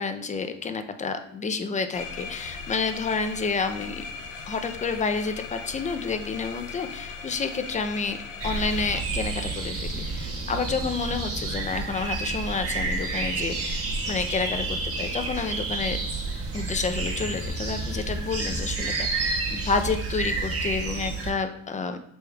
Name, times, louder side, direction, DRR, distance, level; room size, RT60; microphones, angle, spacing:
voice 1, 0.0-4.0 4.5-8.2 8.4-16.0 16.5-22.0, left 4 dB, 25° left, 8 dB, 0.5 m, -29 dB
sound 1, 1.9-9.0, left 5 dB, 85° left, 0.5 m, -38 dB
sound 2, 8.4-21.3, right 3 dB, 50° right, 1.2 m, -30 dB
6.2 x 3.2 x 2.3 m, 0.75 s
cardioid pair, 90°, 30 cm